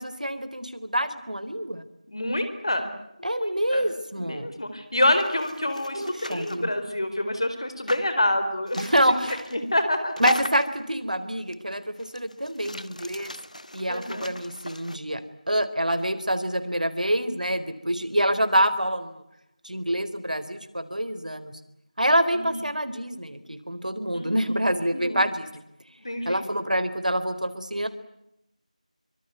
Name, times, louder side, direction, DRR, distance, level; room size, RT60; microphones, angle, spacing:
voice 1, 0.0-1.9 3.2-4.5 5.9-6.7 8.8-9.4 10.2-13.3 13.7-19.2 19.6-21.6 22.0-25.6 26.3-27.9, equal, 80° right, 12 dB, 4.1 m, -26 dB
voice 2, 2.1-2.9 3.3-3.9 4.2-9.0 9.5-10.1 13.9-14.3 22.3-22.6 24.1-24.3 24.9-25.2 26.0-26.4, left 1 dB, 40° left, 9 dB, 4.2 m, -27 dB
sound 1, 5.1-6.6 7.9-8.1 8.7-9.6 10.2-10.8 11.5-11.6 12.0-15.0, left 1 dB, 65° left, 2.0 m, -35 dB
25.5 x 24.0 x 9.5 m, 0.83 s
figure-of-eight pair, 175°, 4 cm